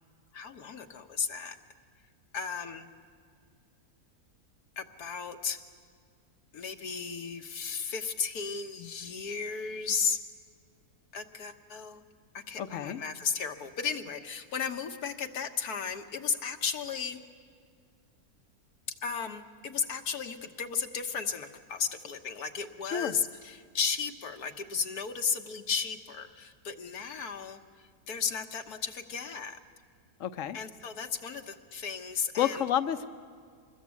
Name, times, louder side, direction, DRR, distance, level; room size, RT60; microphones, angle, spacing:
voice 1, 0.3-1.6 2.3-2.9 4.8-5.6 6.5-10.2 11.1-12.0 12.3-17.2 19.0-29.6 30.5-32.7, left 6 dB, 80° left, 6 dB, 1.7 m, -34 dB
voice 2, 12.6-13.0 22.9-23.1 30.2-30.6 32.4-33.1, left 10 dB, 60° left, 11 dB, 1.2 m, -30 dB
26.0 x 21.0 x 8.4 m, 2.1 s
omnidirectional pair, 1.6 m